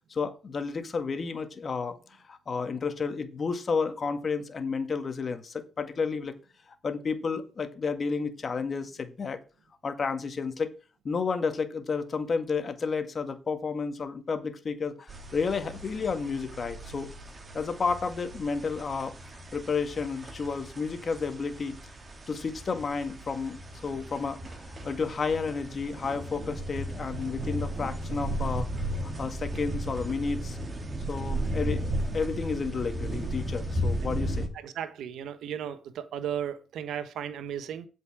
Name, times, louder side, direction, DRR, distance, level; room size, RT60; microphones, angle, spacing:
voice 1, 0.1-2.0 2.3-6.3 6.7-9.4 9.8-10.7 11.0-17.1 17.5-19.1 19.5-21.8 22.3-23.6 23.8-28.7 29.0-30.6 31.1-34.5, left 5 dB, 40° left, 1.8 m, -31 dB
sound 1, 15.1-34.5, right 1 dB, 30° right, 2.6 m, -35 dB
voice 2, 34.5-37.9, right 9 dB, 75° right, 1.3 m, -35 dB
8.4 x 5.4 x 7.4 m
cardioid pair, 85°, 0 cm